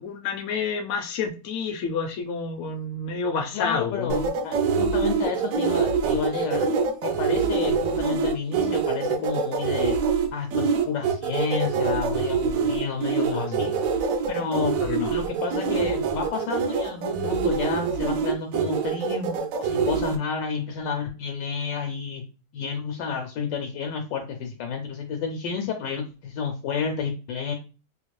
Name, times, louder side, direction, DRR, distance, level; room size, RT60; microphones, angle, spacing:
voice 1, 0.0-4.3 13.3-13.6 14.8-15.1, left 5 dB, 65° left, 4 dB, 0.7 m, -29 dB
voice 2, 3.5-6.7 7.0-10.0 10.3-13.7 14.3-14.7 15.1-22.2 22.5-27.5, left 6 dB, 85° left, 3 dB, 1.3 m, -30 dB
sound 1, 4.1-20.2, right 5 dB, 75° right, 0.8 m, -25 dB
3.1 x 2.4 x 3.1 m, 0.33 s
omnidirectional pair, 1.9 m